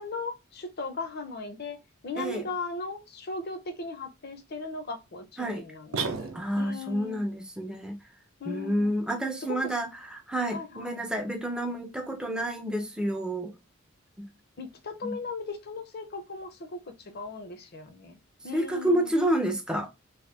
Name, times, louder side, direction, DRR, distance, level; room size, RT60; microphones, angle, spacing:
voice 1, 0.0-1.8 2.0-6.3 6.6-7.2 8.4-8.9 9.5-9.6 10.5-11.1 14.6-18.2 18.4-19.1, left 3 dB, 50° left, 0.6 m, -37 dB
voice 2, 2.2-2.5 5.4-5.6 6.3-8.0 8.5-13.5 14.2-14.3 15.0-15.2 18.5-19.9, right 1 dB, 5° right, 0.5 m, -29 dB
sound 1, 5.9-6.8, right 4 dB, 80° right, 0.6 m, -33 dB
2.9 x 2.6 x 3.2 m
head